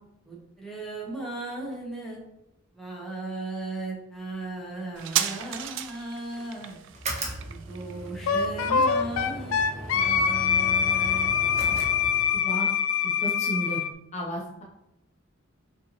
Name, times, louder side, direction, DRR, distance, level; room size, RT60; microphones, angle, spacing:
voice 1, 0.3-2.2 2.7-6.8 7.5-11.8, right 2 dB, ahead, -4 dB, 1.0 m, -37 dB
sound 1, 5.0-12.1 12.3-12.4, right 10 dB, 65° right, 0.3 m, -36 dB
sound 2, 6.9-12.6, right 1 dB, 35° right, 0.8 m, -37 dB
Wind instrument woodwind instrument, 8.3-13.9, left 7 dB, 80° left, 0.3 m, -24 dB
voice 2, 12.3-12.7 13.2-13.8 14.1-14.6, right 1 dB, 35° left, -2 dB, 0.6 m, -32 dB
5.2 x 2.8 x 2.9 m, 0.87 s
head